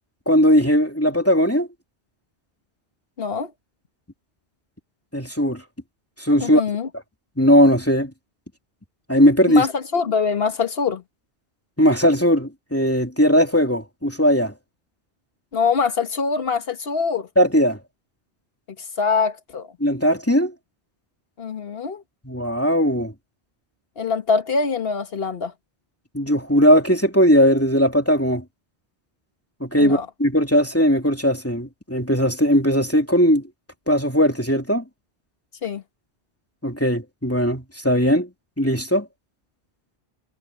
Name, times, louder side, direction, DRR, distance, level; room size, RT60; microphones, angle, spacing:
voice 1, 0.3-1.7 5.1-5.6 6.2-6.6 7.4-8.1 9.1-9.7 11.8-14.5 17.4-17.8 19.8-20.5 22.2-23.1 26.1-28.4 29.6-33.4 33.9-34.8 36.6-38.3 38.6-39.1, equal, 10° left, 2.9 m, -18 dB
voice 2, 3.2-3.5 6.4-6.9 9.5-11.0 15.5-17.3 19.0-19.7 21.4-22.0 24.0-25.5 29.8-30.1 35.6-35.8, left 5 dB, 60° left, 1.6 m, -23 dB
omnidirectional pair, 1.1 m